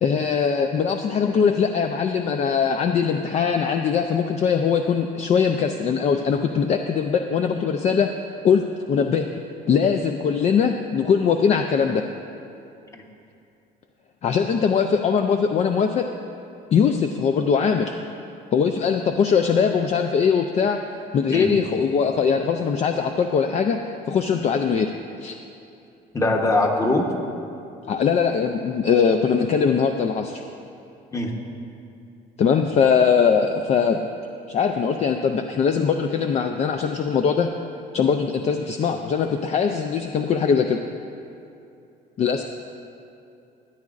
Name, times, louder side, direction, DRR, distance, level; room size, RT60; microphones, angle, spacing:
voice 1, 0.0-8.1 8.4-8.6 8.9-9.3 9.7-12.0 14.2-16.1 16.7-17.9 18.5-20.8 21.1-23.8 24.1-24.9 25.2-25.4 27.9-30.4 32.4-34.0 34.5-37.5 37.9-40.8 42.2-42.4, left 6 dB, 40° left, 5 dB, 0.4 m, -21 dB
voice 2, 26.1-27.1 31.1-31.3, left 2 dB, 20° left, 2 dB, 1.0 m, -21 dB
13.0 x 9.5 x 2.5 m, 2.7 s
cardioid pair, 110°, 17 cm